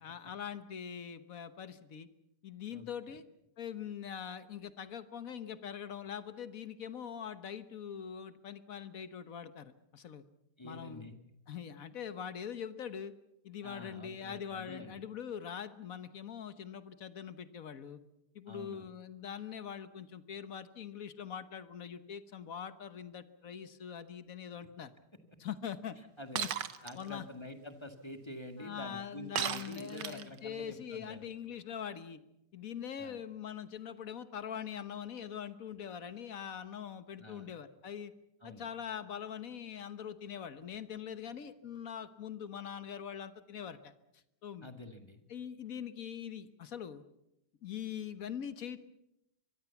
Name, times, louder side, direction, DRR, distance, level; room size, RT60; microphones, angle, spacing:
voice 1, 0.0-2.1 2.4-3.2 3.6-10.2 10.6-11.1 11.5-13.1 13.4-18.0 18.3-24.9 25.4-26.0 26.3-26.5 26.9-27.3 28.6-32.2 32.5-38.1 38.4-43.9 44.4-44.7 45.3-47.0 47.6-48.8, left 8 dB, 50° left, 13 dB, 1.3 m, -43 dB
voice 2, 10.6-11.1 13.6-15.1 18.5-18.9 26.2-26.4 26.8-31.3 33.0-33.2 37.2-37.5 38.4-38.7 44.6-45.2, left 1 dB, 15° left, 7 dB, 1.7 m, -47 dB
Shatter, 26.4-26.9 29.4-30.4, right 9 dB, 60° right, 1.5 m, -35 dB
24.0 x 22.0 x 7.1 m, 0.85 s
omnidirectional pair, 2.4 m